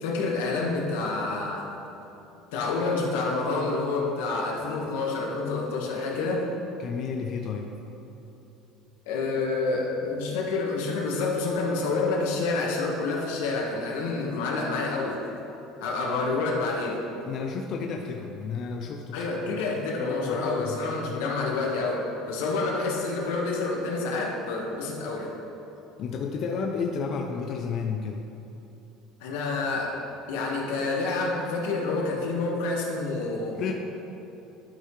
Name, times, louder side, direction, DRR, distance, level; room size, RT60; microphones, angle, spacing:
voice 1, 0.0-1.7 2.5-6.4 9.1-15.2 15.8-17.0 19.1-25.3 29.2-30.0 30.3-33.6, left 3 dB, 90° left, -1 dB, 1.4 m, -28 dB
voice 2, 6.8-7.8 17.3-19.6 20.0-21.3 26.0-28.3 33.6-33.7, left 5 dB, 45° left, 2 dB, 0.5 m, -32 dB
11.5 x 5.6 x 3.2 m, 2.9 s
cardioid pair, 130°, 0 cm